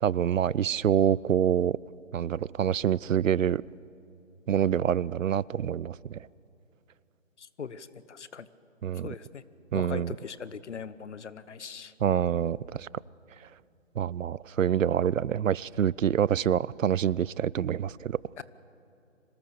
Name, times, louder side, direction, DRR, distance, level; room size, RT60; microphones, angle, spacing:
voice 1, 0.0-1.8 2.1-3.6 4.5-6.2 8.8-9.1 9.7-10.1 12.0-12.9 14.0-18.1, right 9 dB, 80° right, 24 dB, 0.5 m, -26 dB
voice 2, 7.4-8.5 8.9-9.4 9.7-11.9 18.4-18.5, left 6 dB, 60° left, 16 dB, 1.0 m, -40 dB
25.5 x 18.5 x 6.6 m, 2.8 s
figure-of-eight pair, 155°, 39 cm